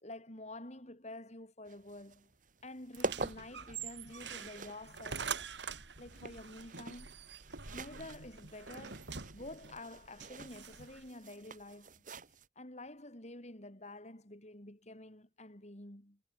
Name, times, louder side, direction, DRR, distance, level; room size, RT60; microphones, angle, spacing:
voice 1, 0.0-2.3 2.6-5.5 6.0-7.1 7.7-12.1 12.6-16.2, left 2 dB, 40° left, 3.9 m, -49 dB
sound 1, 1.7-12.5, right 3 dB, 45° right, 1.8 m, -47 dB
sound 2, 3.0-11.1, right 6 dB, 75° right, 2.6 m, -45 dB
head